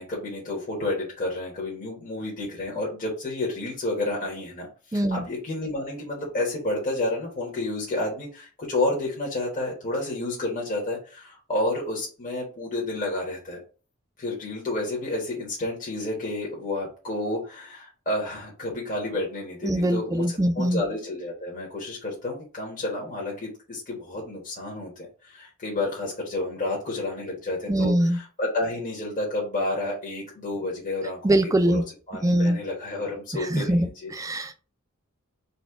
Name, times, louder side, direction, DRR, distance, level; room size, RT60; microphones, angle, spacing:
voice 1, 0.0-13.6 14.2-31.2 31.6-34.1, left 2 dB, 40° left, -4 dB, 1.2 m, -30 dB
voice 2, 4.9-5.2 19.6-20.8 27.7-28.2 31.2-31.8 32.2-32.6 33.3-34.6, right 1 dB, 15° right, 9 dB, 0.4 m, -23 dB
4.1 x 2.3 x 4.6 m, 0.36 s
head